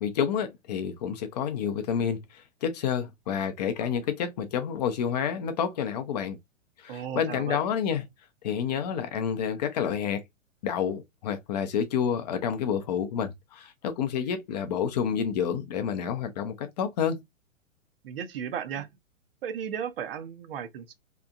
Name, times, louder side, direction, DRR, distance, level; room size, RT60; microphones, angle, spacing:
voice 1, 0.0-6.4 6.8-8.0 8.4-10.2 10.6-17.2, left 8 dB, 35° left, 0.5 m, -29 dB
voice 2, 6.9-7.6 18.0-18.9 19.4-20.9, right 8 dB, 45° right, 0.6 m, -35 dB
3.3 x 2.8 x 2.4 m
figure-of-eight pair, 115°, 39 cm